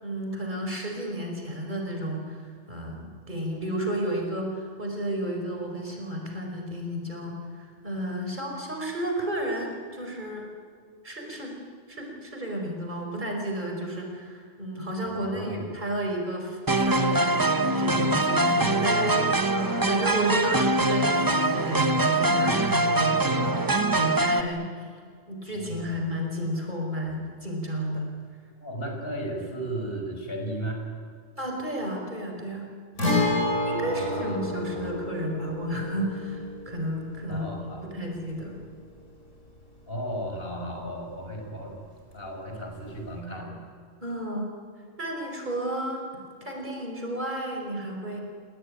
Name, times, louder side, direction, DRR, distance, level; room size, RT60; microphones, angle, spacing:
voice 1, 0.0-10.5 11.0-11.6 11.9-24.7 25.3-28.1 31.4-32.7 33.7-38.6 44.0-44.5 45.0-46.0 46.4-48.2, right 1 dB, 40° right, 1 dB, 5.4 m, -32 dB
voice 2, 15.1-15.6 25.9-26.0 28.6-30.8 33.8-34.4 34.7-34.9 37.3-37.9 39.9-41.7 42.1-43.6, right 1 dB, 50° left, 2 dB, 5.9 m, -35 dB
sound 1, 16.7-24.4, right 2 dB, 20° right, 1.0 m, -23 dB
Guitar, 33.0-40.6 40.9-41.0 43.0-43.1, left 2 dB, 85° left, 5.3 m, -31 dB
29.0 x 19.5 x 10.0 m, 2.1 s
omnidirectional pair, 1.3 m